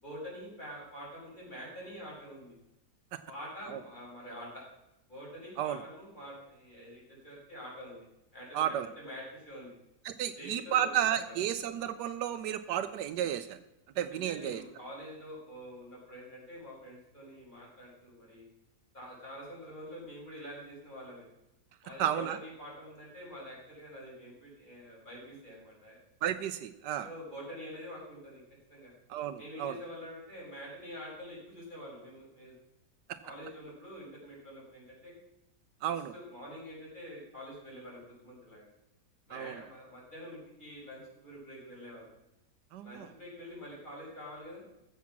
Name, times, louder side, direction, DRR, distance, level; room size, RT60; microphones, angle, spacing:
voice 1, 0.0-2.5 3.3-4.6 5.1-8.1 8.3-9.7 10.4-10.9 11.3-11.4 14.1-18.4 18.9-21.3 21.8-26.0 27.0-28.4 28.7-28.9 29.4-32.5 33.2-35.1 35.8-38.7 39.3-42.1 42.8-44.6, equal, 25° left, -5 dB, 5.4 m, -46 dB
voice 2, 8.5-8.9 10.0-13.6 14.0-14.6 22.0-22.4 26.2-27.1 29.1-29.8 35.8-36.1 39.3-39.5 42.7-43.1, right 10 dB, 85° right, 10 dB, 1.2 m, -32 dB
14.0 x 7.3 x 5.9 m, 0.90 s
omnidirectional pair, 1.8 m